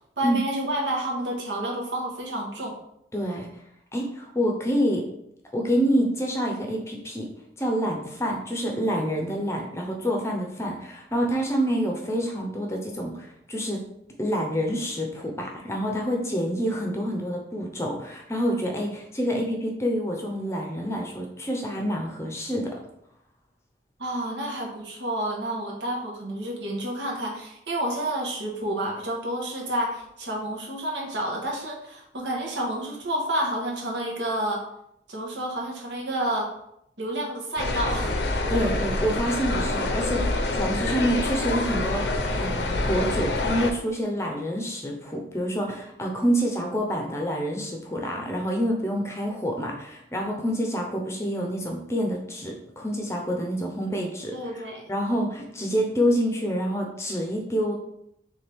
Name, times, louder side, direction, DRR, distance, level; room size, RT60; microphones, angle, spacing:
voice 1, 0.2-2.8 24.0-34.6 35.1-36.5 37.0-38.1 54.3-54.8, right 1 dB, 90° right, -1 dB, 1.2 m, -29 dB
voice 2, 3.1-3.5 3.9-5.1 5.5-7.3 7.6-13.8 14.2-22.7 38.5-54.6 54.9-57.7, equal, 15° left, 1 dB, 0.6 m, -27 dB
sound 1, 37.6-43.7, left 2 dB, 80° left, 0.6 m, -26 dB
4.4 x 3.3 x 3.4 m, 0.78 s
head